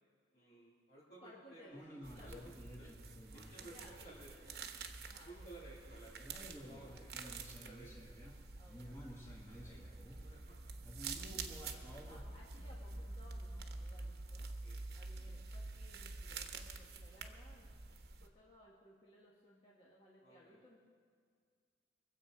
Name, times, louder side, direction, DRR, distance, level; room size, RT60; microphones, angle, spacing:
voice 1, 0.3-2.5 2.8-2.9 3.3-4.6 5.2-8.3 8.8-10.0 10.2-10.6 10.9-11.3 11.7-11.8 14.3-14.8 15.1-15.3 20.2-20.6, right 2 dB, 65° left, -10 dB, 3.2 m, -58 dB
voice 2, 1.2-1.9 2.1-3.0 3.4-4.5 5.0-5.5 6.7-7.3 8.5-9.2 11.1-11.6 12.1-14.5 14.9-17.7 18.2-20.8, left 1 dB, 30° left, -5 dB, 1.6 m, -61 dB
sound 1, 1.7-5.2 5.5-5.6 6.2-12.2, equal, 15° left, 2.0 m, -54 dB
sound 2, 2.0-18.3, right 3 dB, 60° right, 1.0 m, -48 dB
23.5 x 8.0 x 5.2 m, 2.1 s
head